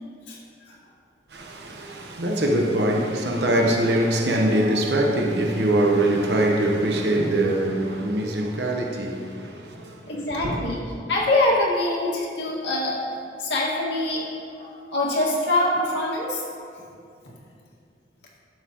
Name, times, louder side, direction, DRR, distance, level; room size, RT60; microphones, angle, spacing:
voice 1, 1.3-10.2 10.4-10.6, right 1 dB, 65° right, 1.0 m, -23 dB
voice 2, 10.1-10.8 11.1-13.0 13.4-14.3 14.6-16.4, left 2 dB, 70° left, 2.0 m, -24 dB
12.0 x 7.3 x 3.0 m
head